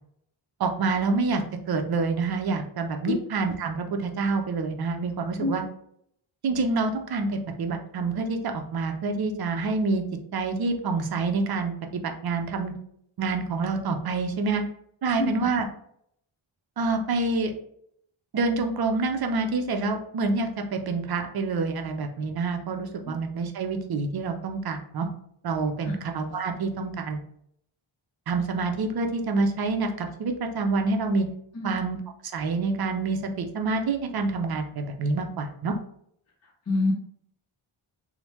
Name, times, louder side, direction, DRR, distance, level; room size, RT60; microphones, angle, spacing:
voice 1, 0.6-5.6 6.4-10.0 10.3-12.7 13.2-14.6 15.0-15.6 16.8-17.5 18.3-25.1 25.4-27.2 28.3-31.3 31.6-35.7, right 3 dB, 50° right, 5 dB, 0.5 m, -27 dB
voice 2, 3.1-3.2 5.4-5.6 15.2-15.3 23.1-23.2 25.8-25.9 31.5-31.7 36.7-36.9, left 2 dB, 30° left, -1 dB, 0.6 m, -26 dB
3.1 x 2.0 x 3.0 m, 0.68 s
wide cardioid pair, 120°, 50 cm